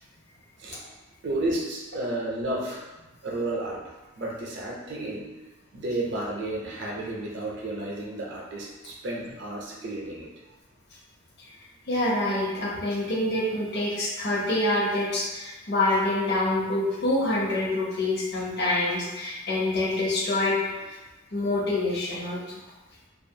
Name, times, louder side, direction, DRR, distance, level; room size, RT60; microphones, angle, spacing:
voice 1, 1.2-2.9 3.2-3.8 4.2-5.3 5.7-10.3, right 1 dB, 60° right, -3 dB, 0.5 m, -32 dB
voice 2, 11.9-21.0 21.3-22.4, left 2 dB, 55° left, -4 dB, 0.6 m, -26 dB
2.4 x 2.4 x 2.7 m, 1.1 s
head